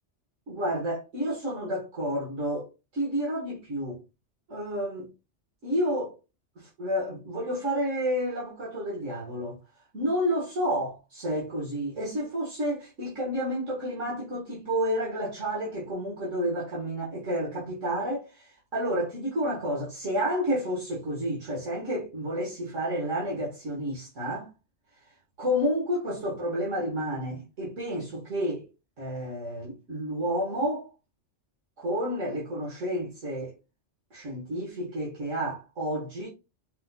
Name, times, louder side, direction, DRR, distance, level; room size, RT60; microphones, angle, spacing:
voice 1, 0.5-4.0 4.5-5.1 5.6-6.2 6.6-9.6 9.9-24.5 25.4-28.6 29.0-30.9 31.8-33.6 34.1-36.3, equal, 85° right, 1.9 m, -30 dB
5.3 x 2.3 x 4.0 m
omnidirectional pair, 1.2 m